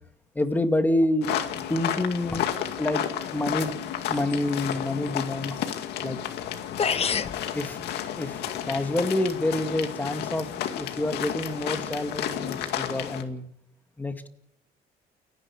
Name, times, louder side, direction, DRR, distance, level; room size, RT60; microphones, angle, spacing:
voice 1, 0.3-1.3 1.7-2.5 2.8-3.0 3.3-3.7 4.1-5.6 6.0-6.2 7.5-7.8 8.2-10.5 10.8-13.5 14.0-14.3, left 1 dB, 10° left, 7 dB, 2.1 m, -27 dB
sound 1, 1.2-13.2, left 10 dB, 80° left, 2.2 m, -32 dB
sound 2, 6.8-7.4, left 6 dB, 35° left, 1.1 m, -25 dB
29.5 x 11.0 x 8.5 m, 0.76 s
cardioid pair, 110°, 17 cm